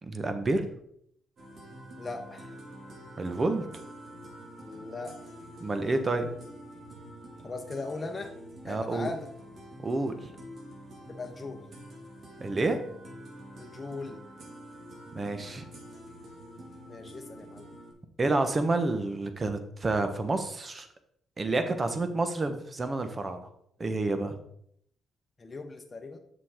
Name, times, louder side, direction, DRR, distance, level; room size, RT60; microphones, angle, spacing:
voice 1, 0.0-0.7 3.2-3.6 5.6-6.3 8.6-9.1 9.8-10.1 12.4-12.8 15.1-15.7 18.2-20.9 21.4-23.5 23.8-24.4, right 2 dB, 30° right, 8 dB, 1.1 m, -29 dB
sound 1, 1.4-17.9, equal, 55° right, 2.1 m, -47 dB
voice 2, 2.0-2.5 4.6-5.2 7.4-8.3 8.6-9.3 11.1-11.6 13.6-14.2 16.9-17.7 25.4-26.2, left 3 dB, 30° left, 4 dB, 1.0 m, -39 dB
7.5 x 6.2 x 3.7 m, 0.70 s
cardioid pair, 75°, 0 cm